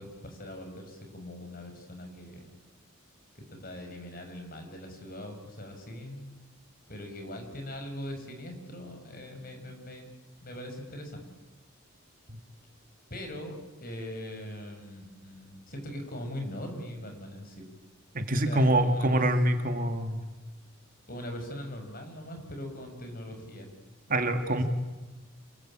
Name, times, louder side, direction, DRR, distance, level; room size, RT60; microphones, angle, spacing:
voice 1, 0.0-2.5 3.3-6.3 6.9-10.1 10.4-11.3 13.1-17.6 18.2-19.2 21.1-24.6, left 1 dB, 40° left, 5 dB, 6.3 m, -41 dB
voice 2, 18.1-20.2 24.1-24.6, right 1 dB, 40° right, 6 dB, 2.2 m, -25 dB
28.5 x 22.5 x 8.9 m, 1.2 s
head